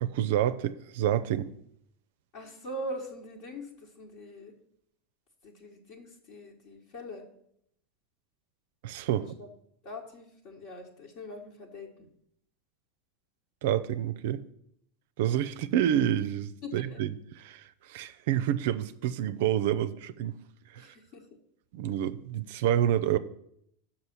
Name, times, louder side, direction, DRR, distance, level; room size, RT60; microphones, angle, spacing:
voice 1, 0.0-1.5 8.8-9.3 13.6-14.4 15.2-17.1 17.4-20.4 20.7-20.9 21.7-23.2, right 11 dB, 60° right, 0.4 m, -28 dB
voice 2, 2.3-4.5 5.4-7.2 9.1-9.5 9.8-12.1 16.6-17.0 20.8-21.2, equal, 55° left, 1.3 m, -42 dB
6.6 x 5.7 x 7.2 m
figure-of-eight pair, 85°, 0 cm